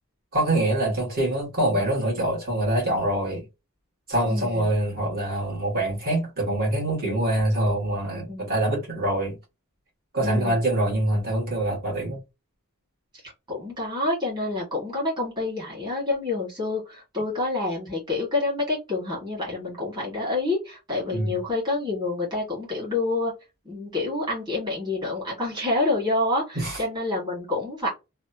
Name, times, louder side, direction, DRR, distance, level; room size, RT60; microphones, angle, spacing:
voice 1, 0.3-3.5 4.1-9.4 10.1-12.2 21.1-21.4 26.6-26.8, right 1 dB, 45° right, 1.8 m, -25 dB
voice 2, 4.3-4.7 8.3-8.5 10.2-10.6 13.2-23.3 23.7-27.9, left 2 dB, 20° right, 1.8 m, -28 dB
3.4 x 2.2 x 2.7 m
head